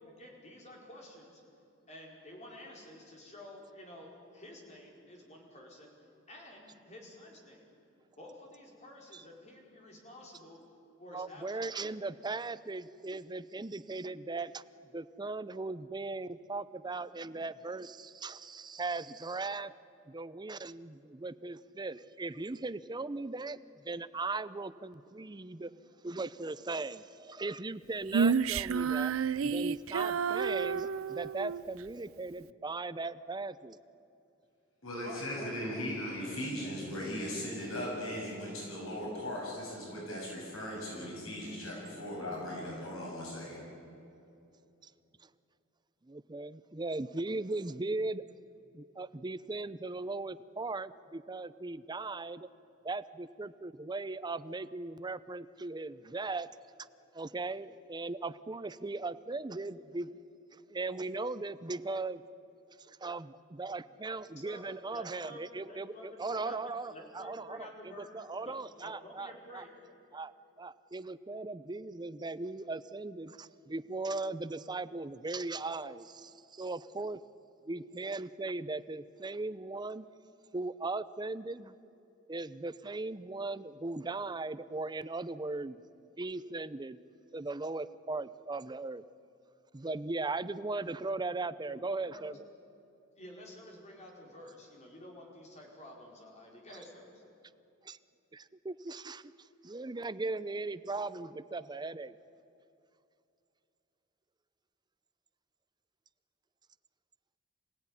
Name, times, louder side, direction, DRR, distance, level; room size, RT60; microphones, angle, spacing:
voice 1, 0.0-1.4 1.9-5.9 6.3-7.7 8.2-10.6 11.0-12.1 35.0-35.8 36.2-36.3 36.5-36.9 64.4-68.1 68.4-69.7 90.8-91.0 91.7-92.3 93.2-97.2, left 1 dB, 35° left, -1 dB, 4.9 m, -51 dB
voice 2, 11.1-14.6 14.9-19.7 20.1-23.6 23.8-25.7 26.0-33.8 46.0-48.2 48.7-52.5 52.8-56.5 57.1-60.1 60.5-62.2 62.9-69.6 70.1-70.3 70.6-77.2 77.7-80.1 80.5-81.7 82.3-85.8 86.2-87.0 87.3-89.0 89.7-92.4 97.8-98.0 98.3-102.2, right 3 dB, 20° right, 13 dB, 0.6 m, -38 dB
Female singing, 28.1-31.6, right 6 dB, 70° right, 0.5 m, -30 dB
voice 3, 34.8-43.6, equal, 75° left, -3 dB, 7.5 m, -38 dB
26.5 x 16.5 x 9.8 m, 2.7 s
head